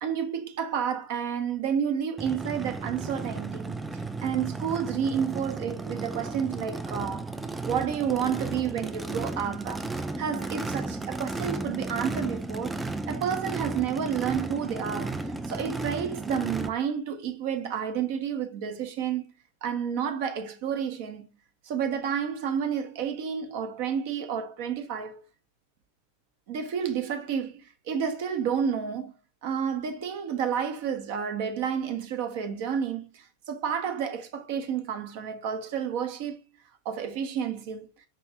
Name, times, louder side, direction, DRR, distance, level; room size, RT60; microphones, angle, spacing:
voice 1, 0.0-3.8 4.2-7.3 7.6-12.7 13.1-15.2 15.5-19.3 19.6-21.3 21.6-25.2 26.5-29.1 29.4-36.4 36.8-37.9, right 7 dB, 50° right, 0.8 m, -30 dB
Race car auto racing / Idling / Accelerating revving vroom, 2.2-16.7, right 3 dB, 10° right, 0.4 m, -34 dB
4.9 x 3.1 x 2.8 m
figure-of-eight pair, 90°, 0 cm